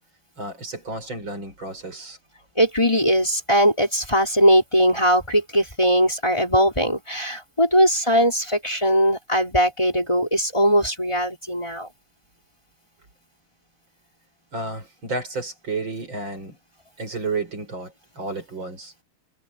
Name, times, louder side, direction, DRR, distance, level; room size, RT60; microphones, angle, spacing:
voice 1, 0.4-2.2 14.5-16.6 17.0-18.9, right 3 dB, 65° right, 6.8 m, -31 dB
voice 2, 2.6-11.9, equal, 15° left, 4.9 m, -20 dB
omnidirectional pair, 2.3 m